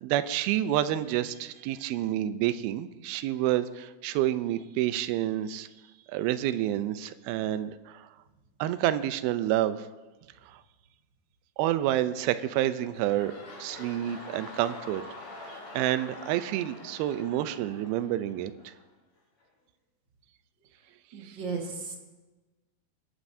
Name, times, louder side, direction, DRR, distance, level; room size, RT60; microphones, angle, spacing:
voice 1, 0.0-5.7 6.1-8.1 8.6-9.9 10.5-10.6 11.6-13.3 13.6-15.0 15.5-18.7 21.2-21.3, right 13 dB, 80° right, 12 dB, 2.3 m, -29 dB
sound 1, 12.3-18.9 19.4-19.5, left 2 dB, 55° left, 4.8 m, -46 dB
voice 2, 21.1-21.9, right 4 dB, 60° right, 0 dB, 1.2 m, -35 dB
20.5 x 11.5 x 2.7 m, 1.2 s
omnidirectional pair, 4.7 m